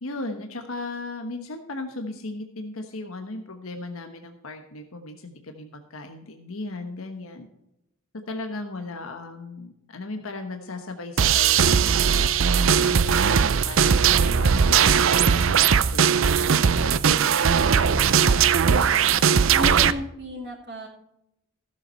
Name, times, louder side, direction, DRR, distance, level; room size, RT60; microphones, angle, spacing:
voice 1, 0.0-7.5 8.3-17.4, left 2 dB, 90° left, 5 dB, 1.2 m, -37 dB
sound 1, 11.2-19.9, right 7 dB, 70° right, 0.5 m, -19 dB
voice 2, 18.3-19.1 19.5-20.9, left 1 dB, 50° right, -4 dB, 2.0 m, -34 dB
15.5 x 7.5 x 4.4 m, 0.84 s
head